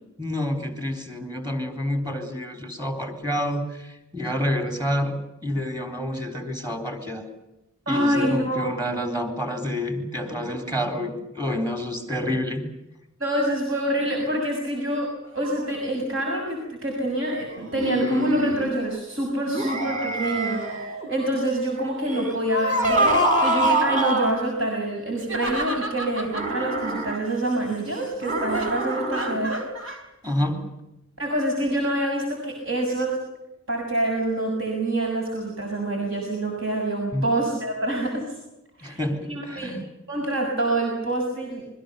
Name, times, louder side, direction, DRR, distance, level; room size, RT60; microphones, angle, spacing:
voice 1, 0.2-7.3 7.9-12.7 30.2-30.7 37.1-37.2 38.8-39.8, left 1 dB, 20° right, 6 dB, 3.8 m, -28 dB
voice 2, 7.9-8.7 13.2-29.7 31.2-33.2 33.7-38.3 38.8-39.7 40.1-41.6, right 1 dB, 70° right, 0 dB, 6.8 m, -26 dB
sound 1, 15.2-16.0 17.3-19.0 20.3-20.8 21.1-21.7 25.1-26.5 28.5-30.1, right 1 dB, 90° right, 4.6 m, -36 dB
sound 2, 17.7-18.7 19.5-21.1 22.0-24.4 26.3-27.2 28.2-29.4, right 1 dB, 40° right, 5.3 m, -25 dB
28.0 x 22.5 x 6.8 m, 0.92 s
head